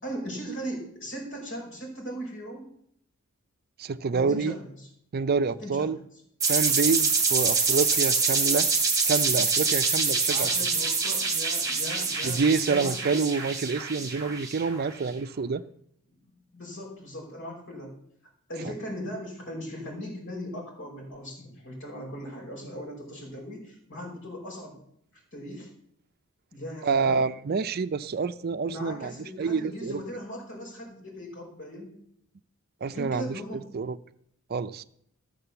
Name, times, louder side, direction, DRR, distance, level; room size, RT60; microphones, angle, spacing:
voice 1, 0.0-2.7 4.1-4.9 5.6-5.9 10.3-12.4 12.7-13.2 16.1-16.2 16.5-18.0 18.5-24.8 25.3-25.7 26.5-27.2 28.7-31.9 32.9-33.7, equal, 60° left, -1 dB, 5.2 m, -38 dB
voice 2, 3.8-4.5 5.1-6.0 6.5-8.7 9.1-10.5 12.2-15.6 26.8-29.1 29.4-30.0 32.8-34.0 34.5-34.8, right 4 dB, 45° right, 12 dB, 0.4 m, -27 dB
sound 1, 6.4-14.9, right 4 dB, 15° right, 2.4 m, -25 dB
14.0 x 6.6 x 6.9 m, 0.69 s
head